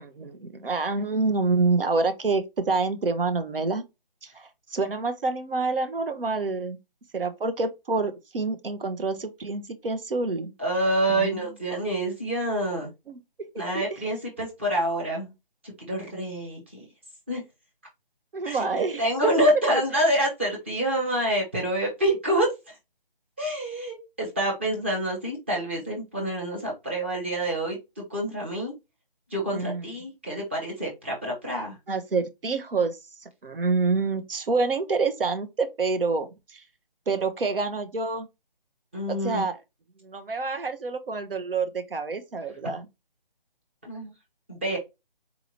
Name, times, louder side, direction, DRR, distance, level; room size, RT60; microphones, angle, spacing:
voice 1, 0.0-3.8 4.2-6.8 7.1-10.5 11.1-11.4 13.1-13.8 18.3-19.0 29.5-29.8 31.9-33.0 33.4-36.6 37.1-38.3 39.1-39.6 40.0-42.9, right 3 dB, 70° right, 0.9 m, -27 dB
voice 2, 10.6-12.9 13.6-15.3 15.8-16.6 17.3-17.4 18.5-22.5 23.4-28.7 29.3-31.7 38.9-39.4 43.8-44.1 44.5-44.8, right 1 dB, 15° right, 0.7 m, -27 dB
4.1 x 2.8 x 2.8 m
figure-of-eight pair, 165°, 29 cm